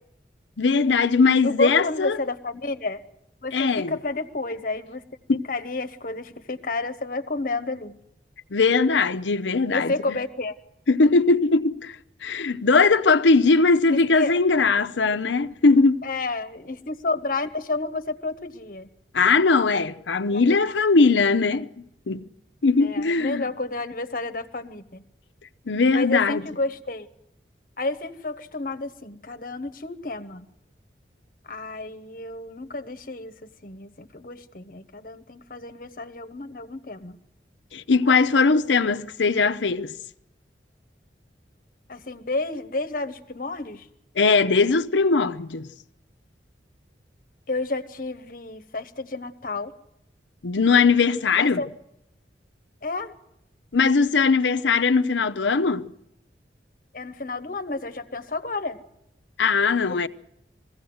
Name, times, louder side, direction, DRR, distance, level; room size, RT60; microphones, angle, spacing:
voice 1, 0.6-2.2 3.5-3.9 5.3-5.4 8.5-10.2 10.9-12.0 12.2-16.0 19.1-21.7 22.1-22.3 22.6-23.5 25.7-26.4 37.7-39.9 44.2-45.7 50.4-51.6 53.7-55.9 59.4-60.1, left 4 dB, 90° left, 0.7 m, -20 dB
voice 2, 1.4-3.0 3.4-5.0 5.3-8.0 9.7-10.5 13.9-14.3 16.0-18.9 20.3-20.8 22.8-25.0 25.9-27.1 27.8-30.5 31.4-37.2 41.9-43.9 47.5-49.7 51.4-51.7 52.8-53.1 56.9-58.8 59.9-60.1, left 3 dB, 50° left, 1.1 m, -31 dB
21.0 x 16.0 x 7.9 m
head